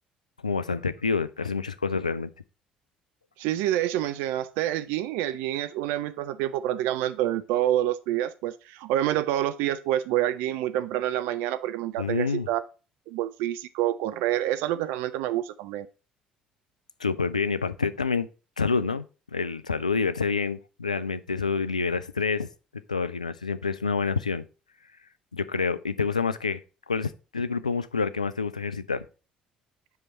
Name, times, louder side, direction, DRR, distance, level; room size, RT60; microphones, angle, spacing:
voice 1, 0.4-2.3 12.0-12.5 17.0-18.3 18.6-19.1 19.3-22.5 22.9-24.4 25.3-26.6 26.9-29.0, left 5 dB, 85° left, 0.3 m, -27 dB
voice 2, 3.4-12.6 13.1-15.9, right 13 dB, 65° right, 0.4 m, -27 dB
7.8 x 5.7 x 2.9 m
figure-of-eight pair, 50°, 4 cm